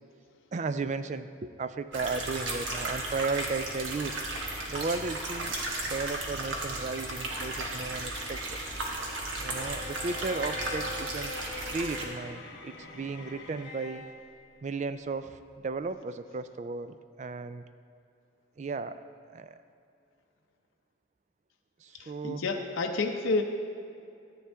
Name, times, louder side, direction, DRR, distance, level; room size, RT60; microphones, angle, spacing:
voice 1, 0.5-4.2 4.7-5.5 5.9-8.6 9.4-11.3 11.7-14.0 14.6-17.6 18.6-19.0 19.3-19.6 21.8-22.4, right 4 dB, 35° right, 12 dB, 0.3 m, -35 dB
sound 1, 1.9-12.0, right 2 dB, 70° right, 1.4 m, -35 dB
Bowed string instrument, 9.5-14.2, left 2 dB, 60° left, 1.2 m, -42 dB
voice 2, 22.0-23.4, left 3 dB, 80° left, 2 dB, 0.7 m, -29 dB
13.5 x 8.6 x 3.5 m, 2.5 s
head